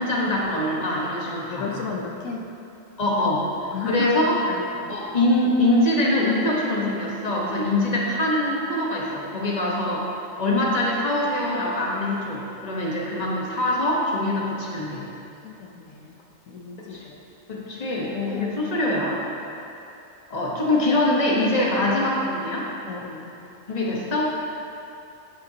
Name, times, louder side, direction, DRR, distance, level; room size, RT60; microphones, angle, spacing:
voice 1, 0.0-1.8 3.0-4.4 4.9-10.0 10.4-15.0 16.8-17.0 17.5-19.2 20.3-22.7 23.7-24.3, left 1 dB, 35° left, -4 dB, 1.3 m, -23 dB
voice 2, 1.3-2.5 3.7-4.1 4.5-5.0 15.4-16.2 16.5-17.2 18.1-18.8 22.9-23.3, left 5 dB, 85° left, 1 dB, 1.1 m, -34 dB
11.5 x 7.4 x 2.9 m, 2.7 s
omnidirectional pair, 1.3 m